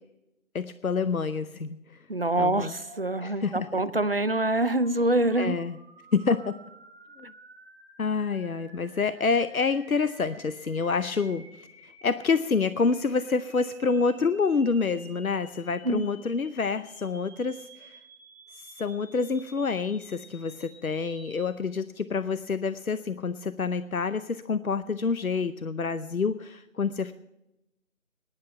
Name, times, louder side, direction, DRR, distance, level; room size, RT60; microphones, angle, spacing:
voice 1, 0.5-2.1 2.4-2.7 3.2-3.8 5.4-5.8 6.1-6.5 7.2-7.3 8.0-18.0 18.5-27.1, left 4 dB, 85° left, 13 dB, 0.8 m, -28 dB
voice 2, 2.1-5.6 15.8-16.0, right 2 dB, 45° right, 15 dB, 0.5 m, -25 dB
sound 1, 2.5-21.5, right 2 dB, 5° right, 1.7 m, -52 dB
16.5 x 10.5 x 5.5 m, 0.90 s
figure-of-eight pair, 160°, 41 cm